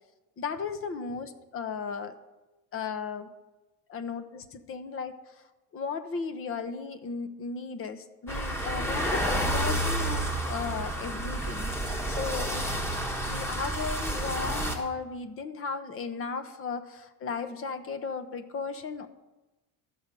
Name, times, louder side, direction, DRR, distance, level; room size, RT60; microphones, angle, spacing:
voice 1, 0.4-2.1 2.7-3.3 3.9-5.5 5.7-11.7 12.1-12.8 13.2-19.1, left 5 dB, 40° left, 10 dB, 0.9 m, -35 dB
sound 1, 8.3-14.8, right 1 dB, 5° left, 1.2 m, -30 dB
12.5 x 5.1 x 6.8 m, 1.1 s
cardioid pair, 145°, 35 cm